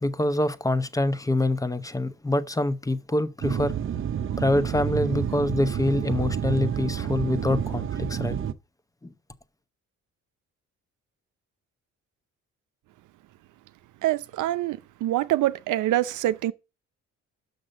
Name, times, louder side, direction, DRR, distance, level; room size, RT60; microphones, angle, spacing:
voice 1, 0.0-3.7 4.4-8.4 9.0-9.1, left 1 dB, 10° left, 0.8 m, -25 dB
sound 1, 3.4-8.5, right 8 dB, 45° right, 0.7 m, -29 dB
voice 2, 14.0-16.5, right 14 dB, 80° right, 0.6 m, -25 dB
6.6 x 6.1 x 6.4 m
cardioid pair, 90°, 30 cm